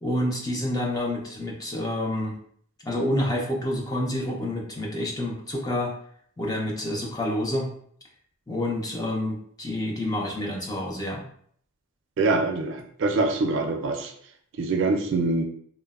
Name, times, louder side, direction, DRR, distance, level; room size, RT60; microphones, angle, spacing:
voice 1, 0.0-2.4 2.8-5.9 6.4-7.7 8.5-11.2, left 1 dB, 15° left, -1 dB, 0.4 m, -28 dB
voice 2, 12.2-14.1 14.6-15.4, right 3 dB, 55° right, 4 dB, 0.3 m, -24 dB
3.0 x 2.0 x 2.3 m, 0.62 s
head